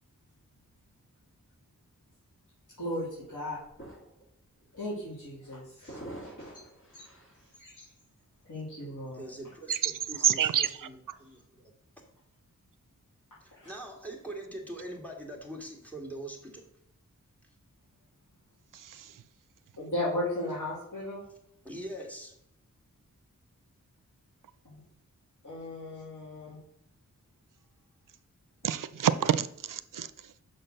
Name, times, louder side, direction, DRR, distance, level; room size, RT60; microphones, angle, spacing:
voice 1, 2.8-3.6 4.7-6.5 7.6-7.8 8.5-9.3 13.5-13.7 19.8-21.2 24.6-24.8 25.4-26.6 28.6-28.8, left 1 dB, 75° left, 3.2 m, -36 dB
sound 1, 2.9-3.0 3.6-4.3 4.6-4.9 5.9-7.5, right 1 dB, 40° left, 1.9 m, -46 dB
voice 2, 9.1-11.7 13.4-16.7 21.6-22.3, right 1 dB, 5° left, 1.8 m, -43 dB
voice 3, 10.2-10.9 18.7-19.2 28.6-30.3, right 9 dB, 75° right, 0.5 m, -28 dB
6.3 x 4.4 x 6.4 m
wide cardioid pair, 95°, 32 cm